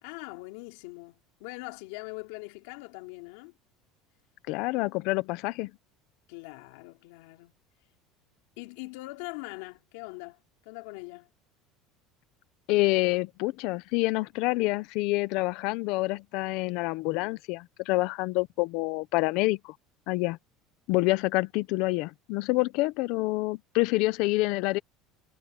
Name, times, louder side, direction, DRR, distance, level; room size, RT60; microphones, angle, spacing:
voice 1, 0.0-3.5 6.3-7.5 8.6-11.3, left 24 dB, 80° left, 3.3 m, -42 dB
voice 2, 4.5-5.7 12.7-19.7 20.1-20.4 20.9-24.8, left 21 dB, 65° left, 0.9 m, -27 dB
cardioid pair, 140°, 0 cm